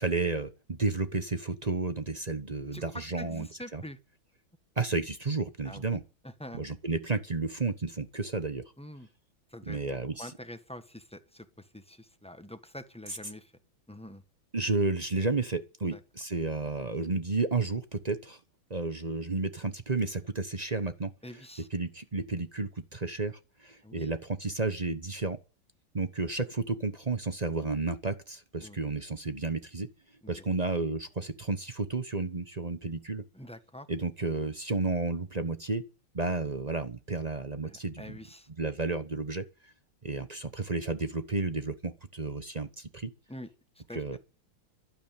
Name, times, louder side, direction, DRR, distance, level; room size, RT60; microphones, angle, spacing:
voice 1, 0.0-3.8 4.8-6.0 6.5-8.6 9.7-10.3 14.5-18.4 18.7-21.1 21.7-25.4 25.9-29.9 30.3-33.2 33.9-35.8 36.1-38.2 38.6-39.4 40.0-43.1 43.9-44.2, right 3 dB, 30° right, 0.8 m, -32 dB
voice 2, 2.7-4.0 5.6-5.8 6.2-6.6 8.8-9.1 9.5-9.8 10.2-13.5 13.9-14.2 15.9-16.0 21.2-21.7 23.8-24.2 28.6-28.8 30.2-30.4 33.3-33.9 37.6-38.5 43.3-43.5 43.7-44.0, left 1 dB, 5° left, 1.1 m, -45 dB
12.5 x 12.0 x 9.1 m
omnidirectional pair, 2.2 m